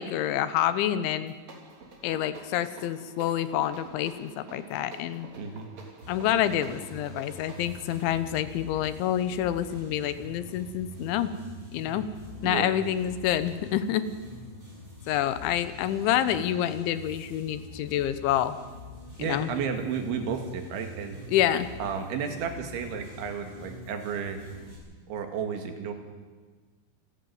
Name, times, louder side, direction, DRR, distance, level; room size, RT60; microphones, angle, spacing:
voice 1, 0.0-1.3 2.0-5.3 6.1-11.3 11.7-12.1 12.4-14.1 15.1-18.6 19.2-19.5 21.3-21.7, left 11 dB, 85° left, 13 dB, 3.4 m, -27 dB
sound 1, 1.2-11.5, right 3 dB, 40° right, 4.0 m, -49 dB
voice 2, 5.4-5.7 12.4-12.8 18.9-21.2 21.8-24.4 25.1-25.9, right 6 dB, 80° right, 5 dB, 4.4 m, -32 dB
sound 2, 6.0-24.8, equal, 10° right, 7.8 m, -45 dB
28.5 x 11.5 x 9.4 m, 1.4 s
omnidirectional pair, 5.3 m